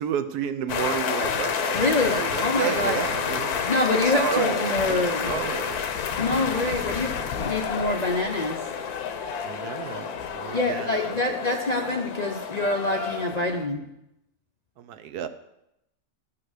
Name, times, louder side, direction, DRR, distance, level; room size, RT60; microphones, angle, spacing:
voice 1, 0.0-3.6 4.0-5.9 6.5-7.0 9.4-11.0 14.8-15.3, right 9 dB, 80° right, 11 dB, 1.2 m, -31 dB
sound 1, 0.7-13.6, left 7 dB, 75° left, 1.3 m, -29 dB
voice 2, 1.7-3.0 3.7-5.3 6.2-7.1 7.4-8.6 10.5-13.9, left 2 dB, 45° left, 3 dB, 0.5 m, -26 dB
12.0 x 5.8 x 6.5 m, 0.86 s
omnidirectional pair, 1.6 m